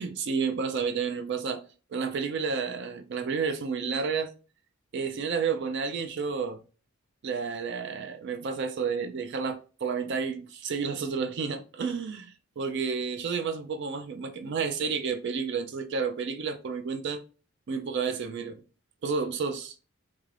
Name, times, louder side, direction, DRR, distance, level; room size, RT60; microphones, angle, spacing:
voice 1, 0.0-1.6 1.9-4.3 4.9-6.6 7.2-17.2 17.7-18.6 19.0-19.7, right 5 dB, 55° right, 0.4 m, -31 dB
3.5 x 3.2 x 2.4 m
head